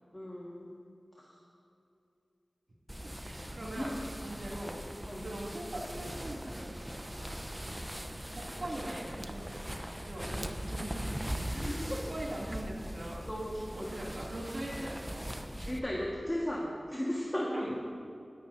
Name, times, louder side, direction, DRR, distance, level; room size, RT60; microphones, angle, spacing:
voice 1, 0.1-0.7 1.2-1.4 3.6-4.0 5.1-5.3 10.2-10.5 11.5-12.1 13.3-14.0 15.7-17.6, equal, 20° left, -4 dB, 1.7 m, -36 dB
sound 1, 2.9-15.8, equal, 15° right, 0.8 m, -40 dB
voice 2, 3.0-4.8 5.2-7.1 8.3-11.7 12.1-13.3 13.7-15.3 17.5-17.7, right 1 dB, 70° right, -5 dB, 2.8 m, -42 dB
20.0 x 9.2 x 2.8 m, 2.7 s
wide cardioid pair, 45°, 0 cm